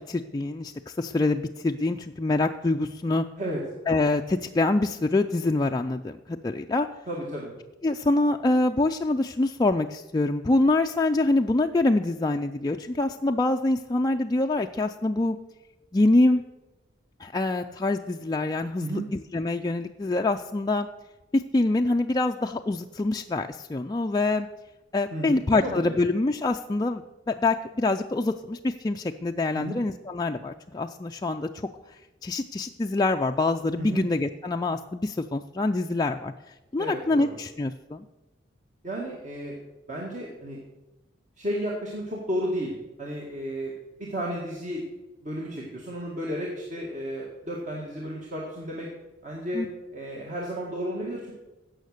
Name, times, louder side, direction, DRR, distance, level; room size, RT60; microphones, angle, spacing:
voice 1, 0.0-3.2 3.9-6.9 7.8-15.4 15.9-16.4 17.2-20.9 21.3-24.5 24.9-31.7 32.2-36.3 36.7-38.0 49.5-49.7, left 2 dB, 20° left, 4 dB, 0.4 m, -25 dB
voice 2, 7.1-7.5 18.8-19.0 25.1-26.0 29.5-29.8 33.8-34.1 36.8-37.3 38.8-39.6 39.9-40.6 41.4-42.7 43.0-43.7 44.0-44.8 45.2-48.9 49.2-49.7 49.9-51.3, equal, 40° right, -3 dB, 2.0 m, -33 dB
16.0 x 6.4 x 6.6 m, 1.1 s
head